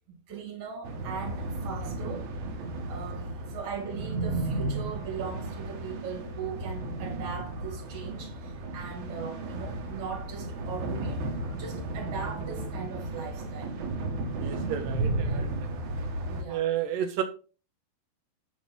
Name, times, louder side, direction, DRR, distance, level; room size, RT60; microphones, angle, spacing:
voice 1, 0.1-2.3 2.9-11.2 11.5-13.7 15.2-15.5 16.3-16.7, right 6 dB, 45° right, 2.3 m, -39 dB
sound 1, 0.8-16.4, right 2 dB, 65° right, 2.1 m, -34 dB
voice 2, 14.4-15.6 16.5-17.2, right 10 dB, 85° right, 1.9 m, -31 dB
7.4 x 5.5 x 3.9 m
omnidirectional pair, 4.7 m